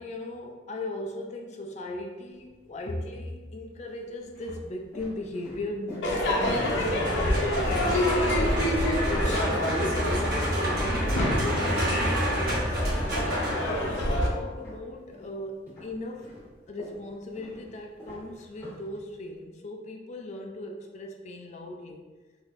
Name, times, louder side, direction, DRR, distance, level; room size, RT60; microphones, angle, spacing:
voice 1, 0.0-7.0 7.7-13.0 13.7-16.3 16.7-22.1, left 1 dB, 40° left, 2 dB, 0.4 m, -38 dB
sound 1, 2.3-3.0 3.7-8.8 9.1-15.4 15.7-19.4, left 1 dB, 15° left, 1.5 m, -47 dB
Crowd / Fireworks, 6.0-14.3, left 1 dB, 85° left, 0.6 m, -27 dB
sound 2, 6.4-14.1, equal, 55° right, 1.1 m, -29 dB
3.4 x 2.7 x 2.5 m, 1.3 s
head